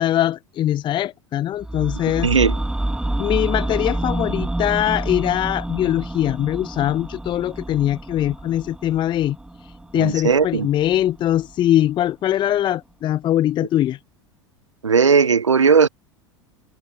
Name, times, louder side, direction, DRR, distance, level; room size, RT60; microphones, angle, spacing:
voice 1, 0.0-2.3 3.2-9.4 9.9-14.0, left 12 dB, 30° left, 0.7 m, -22 dB
sound 1, 1.6-11.7 12.0-12.1, right 1 dB, 5° right, 4.5 m, -29 dB
voice 2, 2.2-2.5 9.9-10.7 14.8-15.9, right 5 dB, 80° right, 0.9 m, -16 dB
figure-of-eight pair, 80°, 15 cm